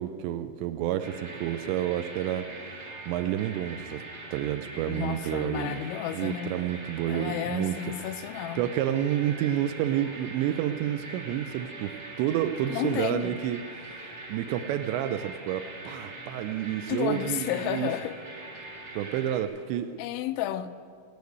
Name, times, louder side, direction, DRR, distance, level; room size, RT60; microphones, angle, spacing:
voice 1, 0.0-2.5 3.1-4.0 4.3-5.8 6.1-7.8 8.6-13.6 14.3-17.9 19.0-20.0, right 11 dB, 85° right, 2.6 m, -29 dB
sound 1, 1.0-19.4, right 2 dB, 50° right, 1.1 m, -42 dB
voice 2, 4.9-6.6 7.1-8.6 12.7-13.3 16.9-18.2 20.0-20.7, left 12 dB, 85° left, 3.0 m, -32 dB
18.0 x 6.6 x 9.4 m
omnidirectional pair, 5.4 m